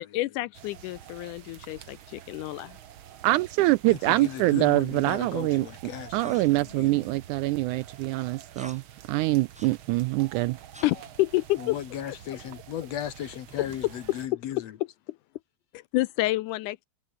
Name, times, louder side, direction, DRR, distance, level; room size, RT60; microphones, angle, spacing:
voice 1, 0.0-2.8 10.8-11.8 13.8-13.9 15.9-16.9, left 18 dB, 80° left, 1.9 m, -28 dB
sound 1, 0.5-14.3, right 10 dB, 65° right, 1.3 m, -48 dB
voice 2, 3.2-5.7 6.1-8.8 9.1-10.6, right 19 dB, 80° right, 1.8 m, -24 dB
voice 3, 3.9-7.1 11.6-14.7, left 10 dB, 60° left, 2.0 m, -36 dB
sound 2, 6.2-6.6 8.5-8.8 9.5-9.8 10.7-11.0 13.5-14.1, equal, ahead, 3.4 m, -48 dB
omnidirectional pair, 3.9 m